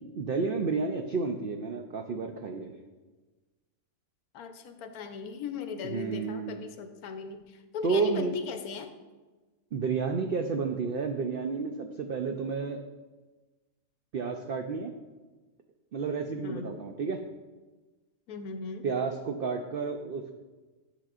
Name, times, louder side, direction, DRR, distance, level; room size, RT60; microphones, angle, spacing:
voice 1, 0.2-2.7 5.9-6.6 7.8-8.4 9.7-12.8 14.1-14.9 15.9-17.2 18.8-20.4, right 4 dB, 90° right, 4 dB, 0.5 m, -31 dB
voice 2, 4.3-8.9 16.4-16.9 18.3-18.9, left 5 dB, 85° left, 8 dB, 1.2 m, -38 dB
10.5 x 6.6 x 2.4 m, 1.3 s
omnidirectional pair, 1.6 m